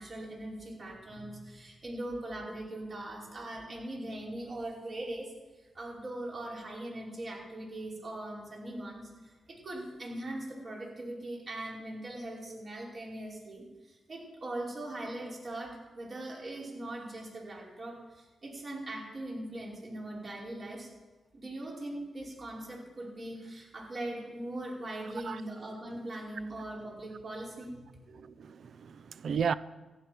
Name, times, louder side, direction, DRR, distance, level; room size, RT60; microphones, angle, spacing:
voice 1, 0.0-5.3 5.6-20.9 21.3-28.0, right 1 dB, 50° right, 5.1 m, -41 dB
voice 2, 28.1-29.5, right 6 dB, 70° right, 0.5 m, -34 dB
15.0 x 9.4 x 6.1 m
cardioid pair, 65°, 0 cm